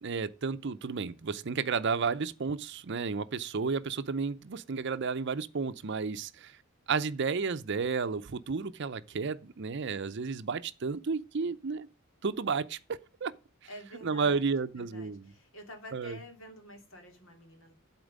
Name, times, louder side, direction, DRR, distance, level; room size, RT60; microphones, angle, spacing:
voice 1, 0.0-6.6 6.9-11.9 12.2-13.3 14.0-15.3 15.9-16.2, right 5 dB, 55° right, 0.6 m, -32 dB
voice 2, 13.7-17.7, equal, 70° left, 2.7 m, -49 dB
11.5 x 4.4 x 5.1 m
head